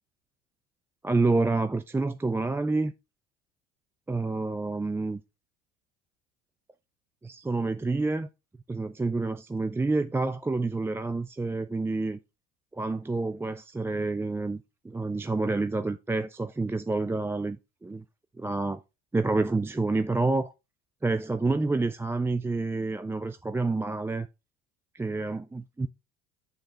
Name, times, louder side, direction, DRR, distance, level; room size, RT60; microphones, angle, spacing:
voice 1, 1.0-2.9 4.1-5.2 7.2-8.3 8.7-12.2 12.7-18.0 18.4-18.8 19.1-20.5 21.0-24.3 24.9-25.9, right 3 dB, 10° right, 0.3 m, -28 dB
8.3 x 3.8 x 4.4 m
hypercardioid pair, 75°, 32 cm